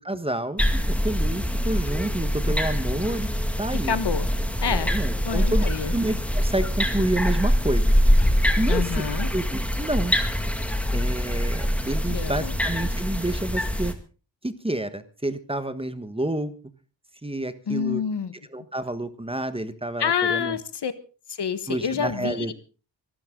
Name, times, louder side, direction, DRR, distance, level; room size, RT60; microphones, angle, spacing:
voice 1, 0.0-0.6 0.9-3.3 3.6-3.9 4.7-5.7 5.9-7.9 8.6-9.0 9.3-10.1 10.9-13.9 14.4-16.5 17.2-18.0 18.5-20.6 21.7-22.5, right 1 dB, 15° right, 11 dB, 1.3 m, -29 dB
sound 1, 0.6-13.9, equal, 5° left, 2.0 m, -24 dB
voice 2, 3.8-4.3 4.6-4.9 5.2-6.0 8.7-9.3 12.1-12.6 17.7-18.3 20.0-20.9 21.3-22.5, left 7 dB, 70° left, 13 dB, 1.4 m, -27 dB
24.5 x 12.5 x 3.8 m, 0.36 s
wide cardioid pair, 120°, 42 cm